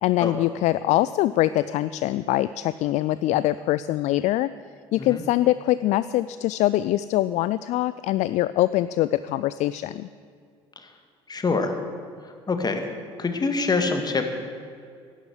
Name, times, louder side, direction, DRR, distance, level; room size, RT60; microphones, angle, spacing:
voice 1, 0.0-4.5 4.9-10.1, left 15 dB, 55° left, 16 dB, 0.4 m, -23 dB
voice 2, 11.3-11.8 12.5-12.9 13.2-14.3, left 4 dB, 30° left, 6 dB, 1.9 m, -25 dB
11.0 x 11.0 x 8.1 m, 2.2 s
hypercardioid pair, 55°, 14 cm